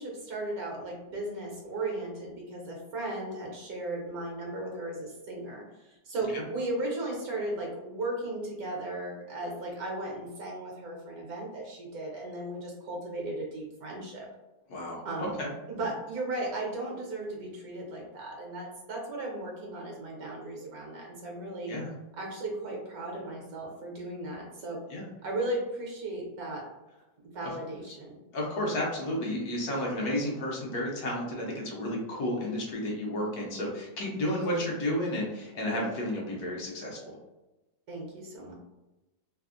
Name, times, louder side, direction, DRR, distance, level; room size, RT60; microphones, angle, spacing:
voice 1, 0.0-14.3 15.0-15.4 15.7-21.7 22.2-24.8 25.2-26.6 27.3-28.2 34.2-34.6 37.9-38.5, right 2 dB, 65° right, -1 dB, 1.2 m, -36 dB
voice 2, 14.7-15.5 21.7-21.9 24.9-25.1 27.4-27.5 28.3-37.2, left 1 dB, 65° left, -3 dB, 1.1 m, -32 dB
3.3 x 2.0 x 2.4 m, 1.0 s
omnidirectional pair, 1.8 m